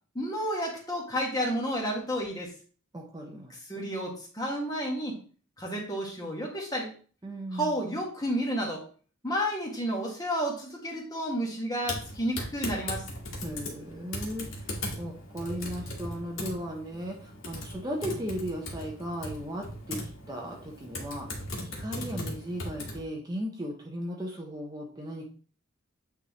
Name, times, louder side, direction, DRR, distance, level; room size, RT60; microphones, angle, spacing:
voice 1, 0.1-2.5 3.5-5.1 5.6-6.9 7.5-8.8 9.2-13.0, equal, 20° left, -1 dB, 1.5 m, -31 dB
voice 2, 2.9-3.5 7.2-7.8 13.4-20.0 20.3-21.3 21.8-25.3, equal, 20° right, 0 dB, 0.8 m, -36 dB
Typing, 11.8-23.0, left 1 dB, 75° left, 1.8 m, -38 dB
8.8 x 3.6 x 3.0 m, 0.41 s
head